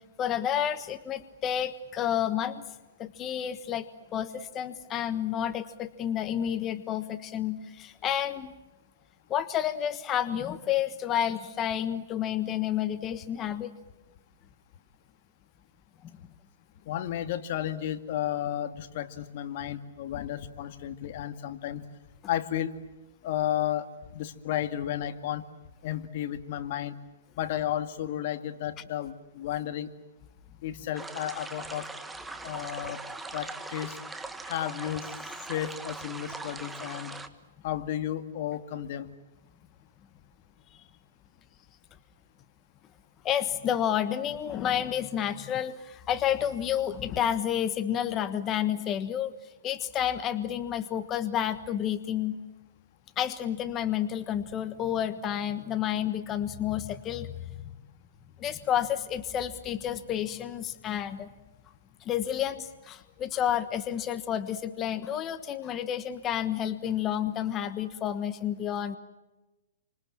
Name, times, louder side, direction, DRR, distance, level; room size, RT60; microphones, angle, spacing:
voice 1, 0.2-2.6 3.0-3.9 4.1-8.5 9.3-13.7 16.0-16.1 43.2-52.4 53.2-57.4 58.4-61.3 62.0-69.0, left 10 dB, 25° left, 11 dB, 1.3 m, -30 dB
voice 2, 16.9-21.8 22.3-22.7 23.2-23.9 24.1-25.4 25.8-27.0 27.4-29.9 30.6-31.9 32.4-33.0 33.3-34.0 34.4-35.1 35.5-37.2 37.6-39.1, left 11 dB, 50° left, 9 dB, 2.1 m, -33 dB
sound 1, 31.0-37.3, right 3 dB, 5° right, 1.5 m, -40 dB
28.0 x 26.0 x 7.4 m, 1.1 s
hypercardioid pair, 145°, 0 cm